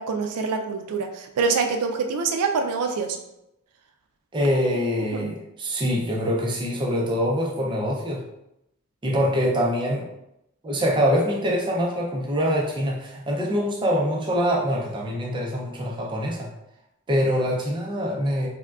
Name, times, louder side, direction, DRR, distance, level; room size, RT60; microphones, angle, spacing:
voice 1, 0.0-3.2 5.0-5.4, right 4 dB, 85° right, 5 dB, 0.3 m, -25 dB
voice 2, 4.3-8.2 9.0-10.1 10.6-16.5 17.1-18.5, equal, 20° right, -2 dB, 0.5 m, -24 dB
3.5 x 2.1 x 2.3 m, 0.85 s
head